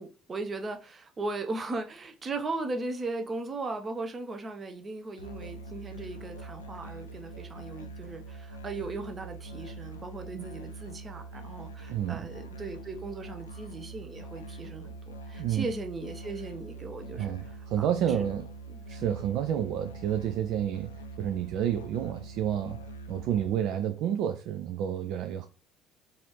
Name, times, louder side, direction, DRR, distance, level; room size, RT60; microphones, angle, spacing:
voice 1, 0.0-18.2 18.7-19.1, right 3 dB, 30° right, 0.7 m, -38 dB
Musical instrument, 5.2-23.5, right 3 dB, 80° left, 0.4 m, -44 dB
voice 2, 17.1-18.5 18.9-20.9 21.2-22.8 23.1-25.5, right 10 dB, 55° right, 0.3 m, -30 dB
4.1 x 2.6 x 3.1 m
figure-of-eight pair, 55°, 0 cm